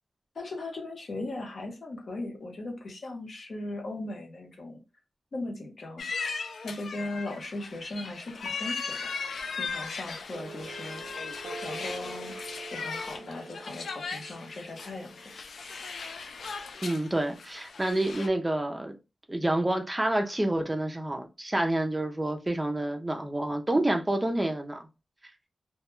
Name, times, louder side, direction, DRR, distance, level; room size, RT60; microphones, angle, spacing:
voice 1, 0.3-4.8 5.3-6.0 6.6-9.1 9.5-11.0 11.6-12.3 12.7-15.3, left 2 dB, 55° left, 0.7 m, -38 dB
sound 1, 6.0-18.3, left 4 dB, 80° left, 0.3 m, -38 dB
sound 2, 10.3-15.4, right 3 dB, 85° right, 0.3 m, -45 dB
voice 2, 16.8-18.9 19.3-24.9, right 1 dB, 15° right, 0.4 m, -28 dB
2.2 x 2.1 x 3.0 m
wide cardioid pair, 155°, 0 cm